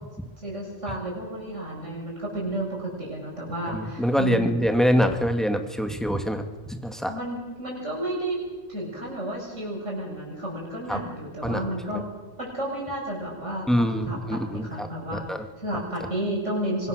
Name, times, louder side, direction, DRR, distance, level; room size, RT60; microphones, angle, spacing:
voice 1, 0.4-4.5 7.1-8.4 8.7-12.0 12.4-15.2 15.6-16.9, right 1 dB, 85° right, -3 dB, 7.8 m, -32 dB
voice 2, 3.7-7.1 10.9-11.0 11.4-11.6 11.9-12.0 13.7-15.4, equal, ahead, 5 dB, 2.0 m, -25 dB
25.0 x 20.5 x 6.7 m, 1.2 s
omnidirectional pair, 1.2 m